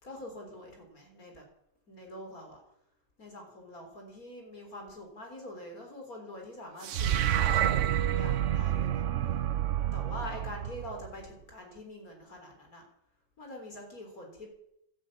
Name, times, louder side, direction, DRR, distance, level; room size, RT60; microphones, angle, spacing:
voice 1, 0.0-1.4 1.9-2.6 3.2-7.7 8.0-9.1 9.9-12.9 13.4-14.5, left 1 dB, 50° left, 2 dB, 4.2 m, -45 dB
sound 1, 6.8-11.2, right 11 dB, 65° right, 0.7 m, -28 dB
13.5 x 12.0 x 8.6 m, 0.78 s
omnidirectional pair, 2.0 m